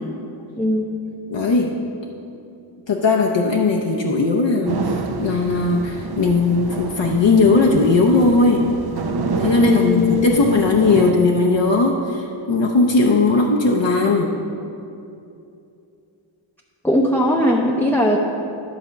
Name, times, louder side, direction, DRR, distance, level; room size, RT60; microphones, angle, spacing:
voice 1, 0.6-0.9 9.6-10.0 16.8-18.2, left 1 dB, 5° left, -2 dB, 0.7 m, -18 dB
voice 2, 1.3-1.7 2.9-4.8 5.2-8.7 9.4-14.3, left 3 dB, 60° left, 0 dB, 0.8 m, -17 dB
sound 1, 4.7-11.1, right 4 dB, 50° right, 0.7 m, -28 dB
11.0 x 4.3 x 7.0 m, 2.7 s
wide cardioid pair, 80°, 49 cm